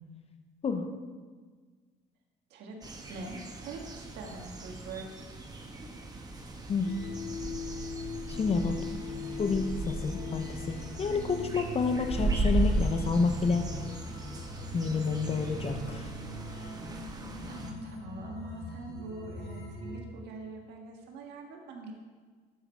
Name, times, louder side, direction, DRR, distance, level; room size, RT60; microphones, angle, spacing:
voice 1, 2.5-5.3 17.4-21.9, right 3 dB, 80° right, 1 dB, 1.7 m, -44 dB
sound 1, 2.8-17.7, right 2 dB, 25° right, 1.2 m, -36 dB
sound 2, 6.8-20.0, left 2 dB, 75° left, 2.3 m, -40 dB
voice 2, 8.3-8.8 9.4-13.6 14.7-16.1, left 4 dB, 35° left, 7 dB, 0.8 m, -29 dB
11.0 x 6.3 x 4.6 m, 1.5 s
cardioid pair, 110°, 17 cm